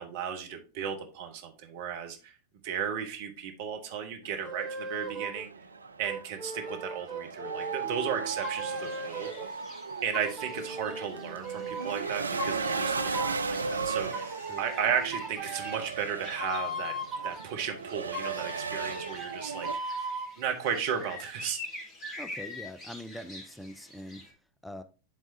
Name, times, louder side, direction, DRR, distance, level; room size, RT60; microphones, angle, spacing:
voice 1, 0.0-2.3 2.6-5.5 6.0-9.3 10.0-16.9 17.2-21.6, right 8 dB, 50° right, 4 dB, 1.2 m, -34 dB
sound 1, 4.3-19.7, right 5 dB, 75° right, 0.3 m, -36 dB
sound 2, 4.5-5.5 6.0-9.5 10.1-12.0 12.4-13.5 14.1-17.4 18.1-20.3, right 1 dB, 20° right, 1.7 m, -38 dB
sound 3, 8.3-24.3, left 2 dB, 25° left, 2.2 m, -47 dB
voice 2, 22.2-24.2 24.6-24.8, equal, ahead, 11 dB, 0.5 m, -43 dB
10.5 x 3.6 x 2.7 m, 0.33 s
figure-of-eight pair, 90°, 0 cm